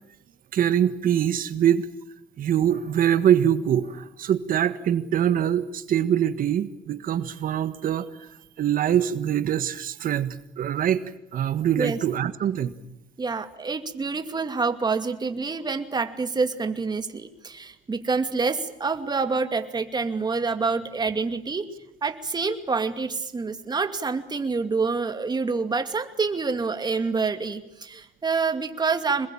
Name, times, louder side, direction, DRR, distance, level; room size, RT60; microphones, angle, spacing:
voice 1, 0.5-1.9 2.4-8.3 8.6-11.0 11.3-12.7, right 10 dB, 55° right, 12 dB, 1.6 m, -23 dB
voice 2, 13.2-21.7 22.0-29.3, right 4 dB, 25° right, 8 dB, 2.5 m, -27 dB
26.5 x 21.0 x 8.8 m, 0.82 s
cardioid pair, 110°, 17 cm